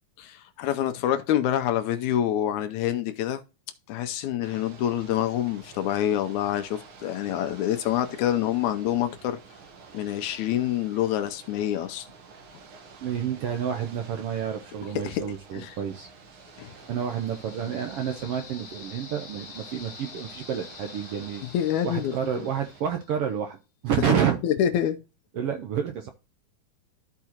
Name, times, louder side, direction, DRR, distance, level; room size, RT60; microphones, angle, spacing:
voice 1, 0.2-3.4 3.9-9.4 9.9-12.1 15.0-15.2 15.5-15.7 16.6-16.7 21.5-22.1 24.1-25.0, left 11 dB, 75° left, 2.0 m, -26 dB
Ocean / Boat Water vehicle, 4.4-22.8, right 5 dB, 55° right, 1.6 m, -49 dB
voice 2, 13.0-16.1 16.9-21.4 21.8-23.6 23.8-24.4 25.3-26.1, right 8 dB, 85° right, 1.3 m, -29 dB
sound 1, 16.3-23.2, left 6 dB, 55° left, 1.7 m, -47 dB
13.5 x 4.7 x 2.9 m
omnidirectional pair, 3.6 m